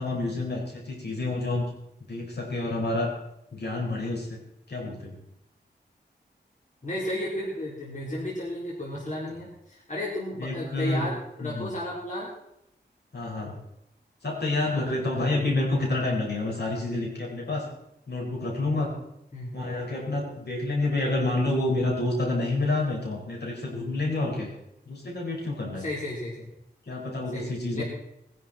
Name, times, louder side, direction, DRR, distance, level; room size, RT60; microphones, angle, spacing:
voice 1, 0.0-1.6 2.1-3.1 3.5-4.4 4.7-5.1 10.4-11.1 11.4-11.7 13.1-13.6 14.2-17.7 18.1-18.9 19.5-24.5 24.9-25.9 26.9-27.8, left 2 dB, 65° left, -2 dB, 5.5 m, -28 dB
voice 2, 6.8-12.3 14.7-14.8 19.3-19.5 25.7-26.5 27.3-27.8, left 1 dB, 45° left, -4 dB, 4.1 m, -33 dB
21.0 x 10.5 x 4.4 m, 0.81 s
wide cardioid pair, 85°, 18 cm